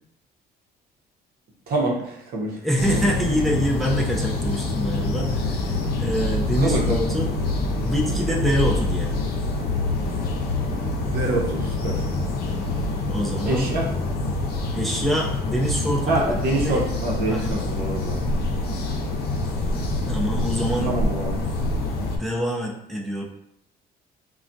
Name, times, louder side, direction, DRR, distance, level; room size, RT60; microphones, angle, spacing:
voice 1, 1.7-2.6 2.9-3.0 6.6-7.0 11.1-12.0 13.5-13.8 16.1-18.2 20.8-21.3, right 2 dB, 65° right, -1 dB, 0.8 m, -26 dB
voice 2, 2.6-5.7 6.0-7.3 7.8-9.2 13.1-13.7 14.7-16.8 17.3-17.6 20.1-20.9 21.7-23.2, equal, ahead, -2 dB, 0.4 m, -25 dB
sound 1, 2.8-22.2, left 2 dB, 70° left, 0.6 m, -26 dB
3.3 x 2.3 x 2.6 m, 0.75 s
cardioid pair, 110°, 17 cm